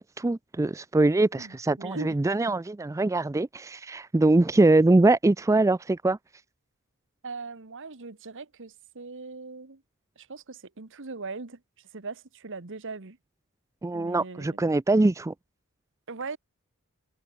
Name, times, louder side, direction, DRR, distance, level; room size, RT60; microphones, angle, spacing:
voice 1, 0.0-6.2 13.8-15.3, right 2 dB, 15° right, 0.3 m, -23 dB
voice 2, 1.4-2.1 7.2-9.8 10.2-11.6 11.9-13.2 13.9-14.7 16.1-16.4, right 3 dB, 60° right, 1.3 m, -39 dB
head